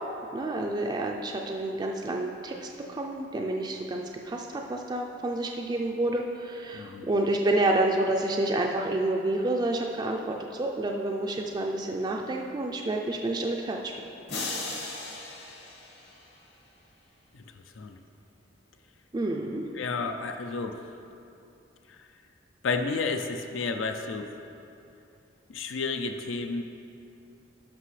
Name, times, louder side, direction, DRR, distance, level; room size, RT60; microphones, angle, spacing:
voice 1, 0.3-13.9 19.1-19.6, right 2 dB, 20° right, 1 dB, 0.3 m, -29 dB
voice 2, 6.7-7.1 17.3-17.4 17.8-18.0 19.7-20.8 22.6-24.3 25.5-26.6, left 4 dB, 85° left, 6 dB, 0.4 m, -31 dB
sound 1, 14.3-16.6, left 3 dB, 65° left, 1.3 m, -37 dB
11.5 x 6.0 x 3.2 m, 2.7 s
head